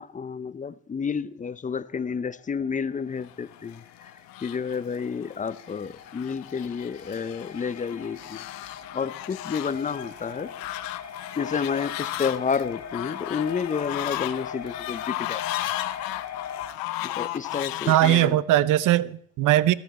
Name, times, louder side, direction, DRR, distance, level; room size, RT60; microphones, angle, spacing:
voice 1, 0.0-4.1 4.4-10.5 11.4-15.4 17.0-18.4, left 6 dB, 20° left, 0.6 m, -30 dB
sound 1, 2.0-16.7, left 7 dB, 50° left, 1.8 m, -41 dB
Fowl, 3.5-18.3, left 16 dB, 75° left, 0.8 m, -35 dB
voice 2, 17.9-19.7, right 14 dB, 60° right, 0.7 m, -20 dB
13.5 x 12.0 x 4.3 m
supercardioid pair, 75°, 35 cm